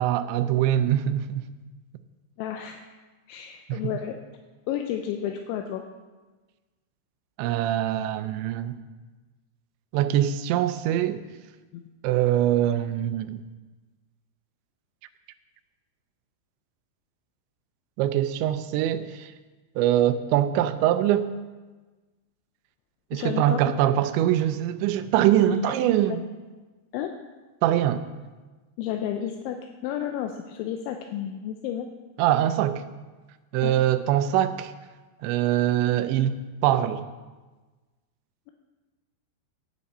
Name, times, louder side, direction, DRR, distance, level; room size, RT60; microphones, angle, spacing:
voice 1, 0.0-1.5 3.7-3.8 7.4-8.8 9.9-11.2 12.0-13.4 18.0-19.3 19.8-21.3 23.1-26.2 27.6-28.0 32.2-32.9 33.5-34.7 35.2-37.0, right 12 dB, 85° right, 2.9 m, -23 dB
voice 2, 2.4-2.8 3.3-4.2 4.7-5.8 23.1-23.6 25.6-26.2 26.9-27.1 28.8-29.6 29.8-31.9 33.6-33.7, left 10 dB, 85° left, 3.0 m, -31 dB
16.5 x 9.3 x 4.2 m
omnidirectional pair, 5.3 m